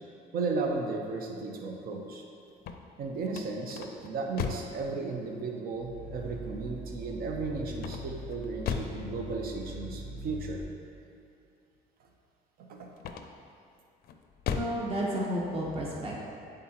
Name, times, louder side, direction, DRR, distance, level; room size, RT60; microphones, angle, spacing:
voice 1, 0.3-2.2 3.0-10.6 12.6-12.9, right 3 dB, 60° right, 2 dB, 0.8 m, -35 dB
sound 1, 2.5-4.8 7.8-9.1 13.0-13.5 14.0-14.8, left 7 dB, 65° left, 0.4 m, -36 dB
Growling, 5.7-10.7, equal, 90° right, 1.4 m, -42 dB
voice 2, 14.5-16.2, equal, 35° right, -4 dB, 1.1 m, -32 dB
8.3 x 3.8 x 2.9 m, 2.6 s
cardioid pair, 110°, 17 cm